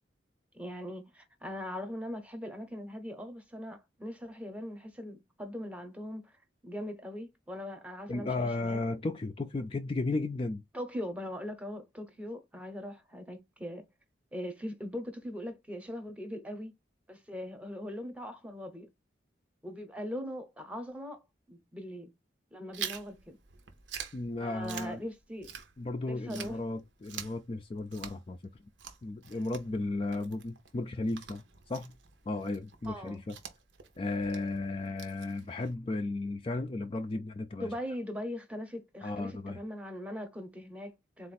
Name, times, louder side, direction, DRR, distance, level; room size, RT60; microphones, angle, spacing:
voice 1, 0.5-6.3 6.6-8.8 10.7-13.8 14.3-16.7 17.1-18.9 19.6-21.2 21.5-22.1 22.5-23.4 24.4-25.5 26.0-26.6 32.9-33.2 37.6-41.3, equal, 5° right, 0.7 m, -40 dB
voice 2, 8.1-10.6 24.1-25.0 25.8-28.4 29.0-31.9 32.3-33.3 34.0-37.7 39.0-39.6, left 2 dB, 30° left, 0.3 m, -34 dB
Chewing mastication, 22.7-26.0 26.3-35.7, right 8 dB, 85° right, 0.8 m, -46 dB
4.0 x 2.4 x 4.1 m
head